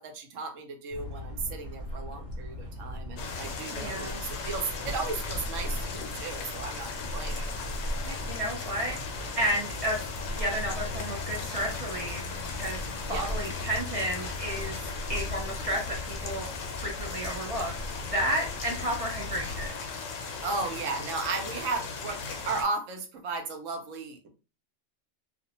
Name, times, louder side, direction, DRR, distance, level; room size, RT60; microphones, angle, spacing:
voice 1, 0.0-7.6 13.1-13.2 20.4-24.3, right 3 dB, 85° right, 4 dB, 1.0 m, -35 dB
sound 1, 0.9-19.7, left 1 dB, 30° left, 0.9 m, -38 dB
sound 2, 3.2-22.6, left 5 dB, 90° left, 1.0 m, -38 dB
voice 2, 3.7-4.2 8.1-9.0 9.4-16.5 16.8-19.8, right 1 dB, 45° right, -2 dB, 0.4 m, -32 dB
2.4 x 2.0 x 2.8 m, 0.32 s
omnidirectional pair, 1.3 m